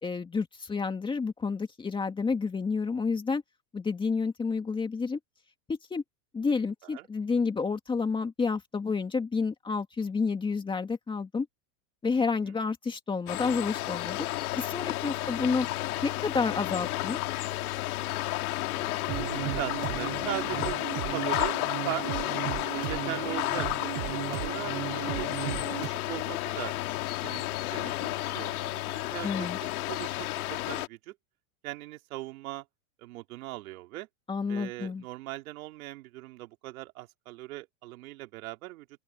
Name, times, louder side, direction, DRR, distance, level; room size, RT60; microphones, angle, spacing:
voice 1, 0.0-3.4 3.7-5.2 5.7-6.0 6.3-11.5 12.0-14.3 14.6-15.7 16.0-17.2 29.2-29.6 34.3-35.0, left 4 dB, 10° left, 2.2 m, -30 dB
voice 2, 12.2-12.6 15.2-15.4 18.7-21.6 21.9-22.1 22.7-25.3 25.8-26.7 27.2-31.2 31.6-32.7 33.0-34.1 34.5-38.9, right 18 dB, 65° right, 3.9 m, -40 dB
sound 1, 13.3-30.9, left 17 dB, 70° left, 2.4 m, -32 dB
sound 2, 19.1-25.9, right 21 dB, 30° right, 0.6 m, -35 dB
open air
supercardioid pair, 160°, 46 cm